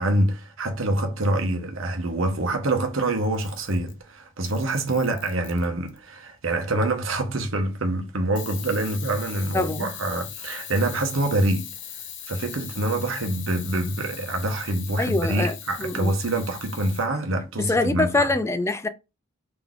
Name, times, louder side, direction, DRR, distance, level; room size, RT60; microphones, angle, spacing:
voice 1, 0.0-11.7 12.3-18.3, right 1 dB, 75° right, 1.0 m, -26 dB
Camera, 3.2-4.0 4.4-6.0 8.4-17.1, left 9 dB, 60° left, 0.8 m, -40 dB
voice 2, 9.5-9.9 15.0-15.5 15.8-16.1 17.6-18.9, left 2 dB, 15° left, 0.4 m, -24 dB
3.9 x 2.9 x 3.6 m
head